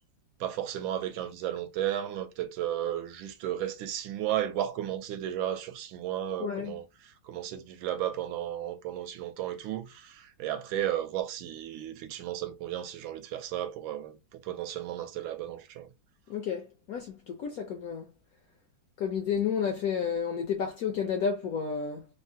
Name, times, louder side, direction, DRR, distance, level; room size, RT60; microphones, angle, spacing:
voice 1, 0.4-6.9 7.2-15.9, right 11 dB, 80° right, 1.3 m, -34 dB
voice 2, 6.4-6.8 16.3-18.1 19.0-22.1, left 7 dB, 70° left, 0.8 m, -31 dB
3.4 x 2.1 x 2.6 m
omnidirectional pair, 2.1 m